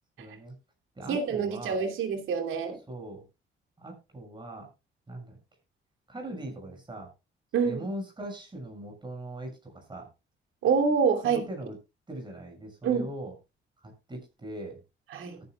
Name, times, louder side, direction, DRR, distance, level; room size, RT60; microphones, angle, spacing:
voice 1, 0.2-0.6 0.9-1.8 2.9-3.2 3.8-4.7 5.1-5.4 6.1-7.1 7.6-10.1 11.2-11.8 12.1-13.3 13.8-14.8, right 1 dB, 25° right, 2 dB, 6.6 m, -40 dB
voice 2, 1.1-2.8 7.5-7.9 10.6-11.4 12.8-13.1 15.1-15.4, right 6 dB, 85° right, 5 dB, 2.8 m, -26 dB
18.5 x 10.5 x 2.3 m, 0.27 s
cardioid pair, 90°, 20 cm